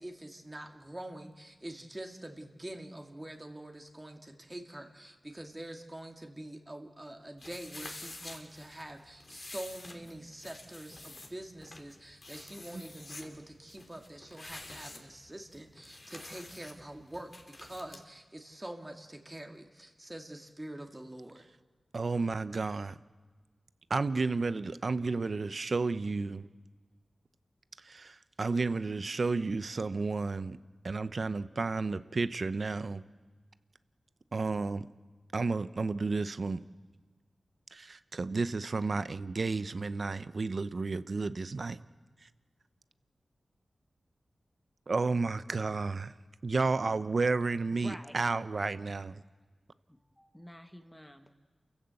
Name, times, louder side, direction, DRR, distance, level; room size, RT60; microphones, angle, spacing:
voice 1, 0.0-21.4, right 1 dB, 20° right, 2.3 m, -45 dB
sound 1, 7.4-18.0, left 2 dB, 50° left, 3.2 m, -49 dB
voice 2, 21.9-22.9 23.9-26.5 27.9-30.6 30.8-33.0 34.3-34.9 35.3-36.6 37.7-41.8 44.9-46.1 46.4-49.2, right 3 dB, 60° right, 0.8 m, -32 dB
voice 3, 47.3-48.2 48.7-49.0 49.9-51.3, equal, 10° left, 1.8 m, -50 dB
28.5 x 15.5 x 7.9 m
cardioid pair, 45°, 0 cm